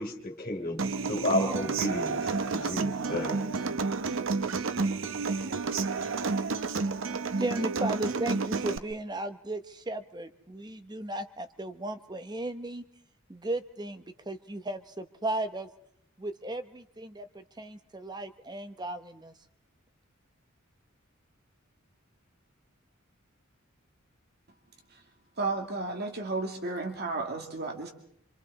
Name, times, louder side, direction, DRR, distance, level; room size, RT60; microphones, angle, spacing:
voice 1, 0.0-3.4, left 1 dB, 45° left, 3 dB, 3.4 m, -32 dB
Human voice / Acoustic guitar, 0.8-8.8, right 4 dB, 65° right, 0.9 m, -30 dB
voice 2, 7.3-12.8 13.3-15.7 16.2-19.3, right 1 dB, 20° right, 9 dB, 0.9 m, -35 dB
voice 3, 25.4-27.9, right 3 dB, 50° right, 3 dB, 2.4 m, -33 dB
26.5 x 25.5 x 4.2 m, 0.67 s
head